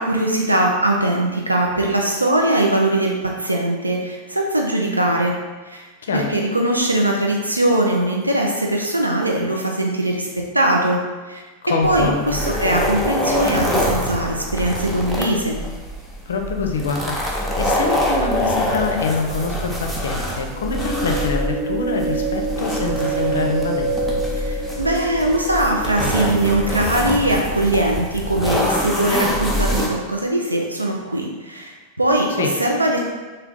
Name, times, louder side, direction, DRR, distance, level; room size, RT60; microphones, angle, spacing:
voice 1, 0.0-5.3 5.7-5.9 6.1-11.0 11.3-11.4 11.8-15.6 24.4-33.1, right 1 dB, 85° right, 0 dB, 0.3 m, -21 dB
voice 2, 11.6-12.4 16.3-24.2 32.4-32.5, left 4 dB, 65° left, 2 dB, 0.4 m, -25 dB
sound 1, 11.8-29.9, equal, 5° right, 0.6 m, -25 dB
sound 2, 20.5-27.8, right 2 dB, 55° right, 0.8 m, -27 dB
3.3 x 2.2 x 3.7 m, 1.3 s
figure-of-eight pair, 90°, 0 cm